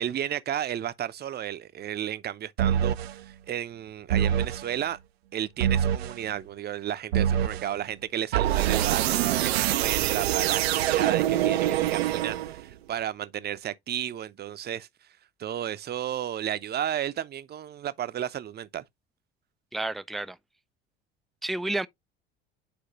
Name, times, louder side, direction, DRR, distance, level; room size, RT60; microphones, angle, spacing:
voice 1, 0.0-5.0 5.3-14.9 15.4-18.8, right 10 dB, 30° right, 0.7 m, -33 dB
sound 1, 2.6-3.1 4.1-4.7 5.6-6.2 7.1-7.7 8.3-12.7, right 11 dB, 75° right, 0.6 m, -25 dB
voice 2, 19.7-20.4 21.4-21.9, right 2 dB, ahead, 0.3 m, -30 dB
8.7 x 4.6 x 2.9 m
figure-of-eight pair, 60°, 32 cm